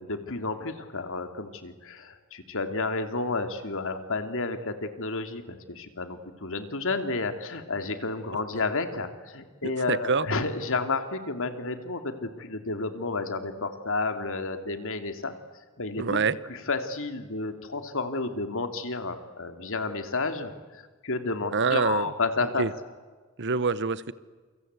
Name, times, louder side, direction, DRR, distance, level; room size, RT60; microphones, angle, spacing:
voice 1, 0.0-15.3 15.8-16.2 16.5-22.7, left 3 dB, 65° left, 8 dB, 2.8 m, -31 dB
voice 2, 9.6-10.3 16.0-16.4 21.5-22.1 22.6-22.7 23.4-24.1, right 4 dB, 55° right, 17 dB, 1.0 m, -26 dB
28.5 x 25.0 x 8.2 m, 1.4 s
head